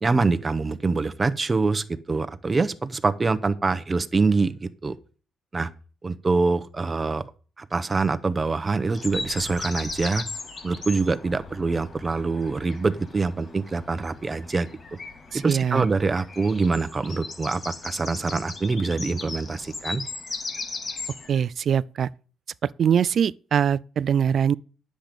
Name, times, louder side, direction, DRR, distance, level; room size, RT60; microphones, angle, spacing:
voice 1, 0.0-4.9 5.5-5.7 6.0-7.2 7.6-10.2 10.6-14.7 15.3-20.0, right 3 dB, 25° right, 0.9 m, -25 dB
sound 1, 8.9-21.5, left 3 dB, 40° left, 3.3 m, -37 dB
voice 2, 15.3-15.9 21.3-22.1 22.6-24.5, right 8 dB, 55° right, 0.4 m, -22 dB
10.0 x 7.6 x 5.2 m
cardioid pair, 90°, 0 cm